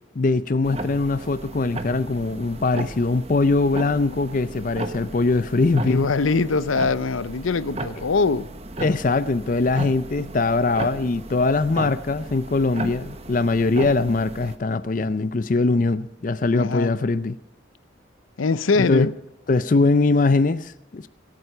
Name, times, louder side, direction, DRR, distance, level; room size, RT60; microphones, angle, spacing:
voice 1, 0.2-6.1 8.8-17.4 18.8-19.1 19.5-21.1, left 3 dB, 40° left, 0.5 m, -22 dB
sound 1, 0.6-14.6, right 2 dB, 30° right, 1.1 m, -35 dB
voice 2, 5.9-8.5 16.5-16.9 18.4-19.1, left 4 dB, 90° left, 0.6 m, -22 dB
23.5 x 9.1 x 5.6 m
head